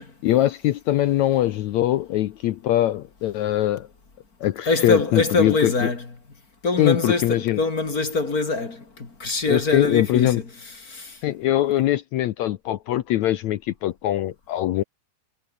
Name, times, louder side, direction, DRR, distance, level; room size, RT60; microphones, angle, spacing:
voice 1, 0.2-3.9 4.4-5.9 6.8-7.6 9.5-10.4 11.2-14.8, left 14 dB, 80° left, 1.6 m, -22 dB
voice 2, 4.7-6.0 6.6-10.4 10.8-11.2, left 3 dB, 25° left, 3.0 m, -24 dB
omnidirectional pair, 4.3 m